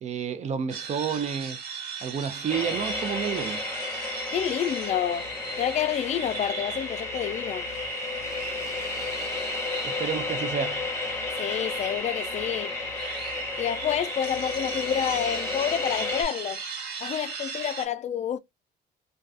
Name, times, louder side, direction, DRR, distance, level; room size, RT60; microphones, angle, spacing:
voice 1, 0.0-1.6 2.0-3.6 9.8-10.9, right 7 dB, 40° right, 0.5 m, -30 dB
sound 1, 0.7-17.9, right 5 dB, 70° right, 1.1 m, -38 dB
sound 2, 2.5-16.2, left 3 dB, 15° left, 0.8 m, -32 dB
voice 2, 4.3-5.3 5.6-7.7 11.4-12.7 13.6-16.6 17.0-18.4, left 9 dB, 45° left, 0.4 m, -28 dB
2.4 x 2.3 x 2.3 m
cardioid pair, 110°, 17 cm